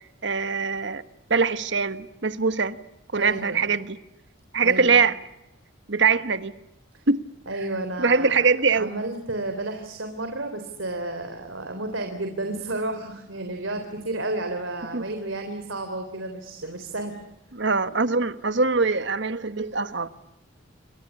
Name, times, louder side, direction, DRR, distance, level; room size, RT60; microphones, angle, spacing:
voice 1, 0.2-1.0 1.3-2.8 3.1-4.0 4.5-5.2 5.9-6.5 7.1-7.2 8.0-8.9 14.9-15.0 17.5-20.1, right 4 dB, 65° right, 1.4 m, -22 dB
voice 2, 3.1-3.6 4.6-5.0 7.5-8.4 8.8-17.2, right 2 dB, 90° right, 3.7 m, -31 dB
28.5 x 24.0 x 8.4 m
head